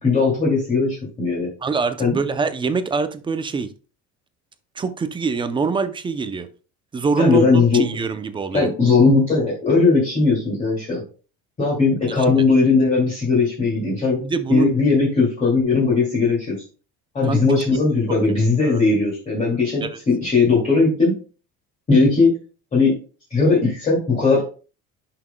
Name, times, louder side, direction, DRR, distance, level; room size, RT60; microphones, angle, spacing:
voice 1, 0.0-1.5 2.0-2.1 7.2-7.8 8.5-11.0 11.6-14.2 14.5-16.5 17.1-21.1 21.9-22.3 22.7-22.9 23.3-24.5, left 4 dB, 25° left, -5 dB, 2.5 m, -18 dB
voice 2, 1.6-3.7 4.8-6.5 6.9-8.7 14.2-14.7 17.2-17.4 18.6-18.8 19.8-20.0, right 4 dB, 15° right, 10 dB, 0.5 m, -24 dB
11.0 x 5.8 x 2.2 m, 0.37 s
cardioid pair, 155°, 30 cm